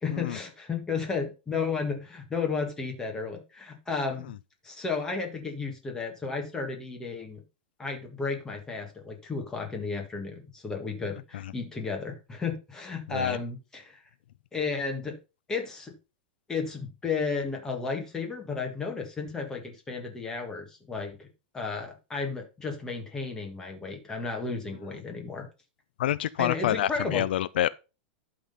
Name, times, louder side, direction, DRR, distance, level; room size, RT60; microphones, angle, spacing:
voice 1, 0.0-4.3 4.6-7.4 7.8-14.0 14.5-15.1 15.5-15.9 16.5-21.3 21.5-25.5 26.4-27.3, left 4 dB, 10° left, 1.7 m, -33 dB
voice 2, 26.0-27.7, left 12 dB, 75° left, 0.4 m, -28 dB
11.5 x 3.9 x 5.4 m
supercardioid pair, 160°, 5 cm